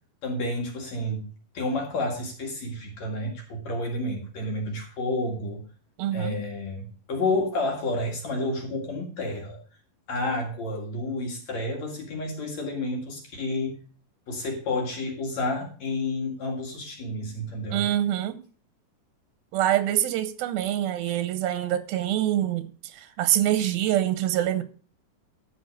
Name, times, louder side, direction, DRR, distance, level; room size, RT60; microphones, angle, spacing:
voice 1, 0.2-1.3 1.5-5.6 6.1-9.6 10.1-13.8 14.3-17.8, left 2 dB, 55° left, 3.0 m, -30 dB
voice 2, 6.0-6.4 17.7-18.4 19.5-24.6, right 12 dB, 85° right, 2.8 m, -25 dB
13.5 x 5.0 x 6.3 m
omnidirectional pair, 4.2 m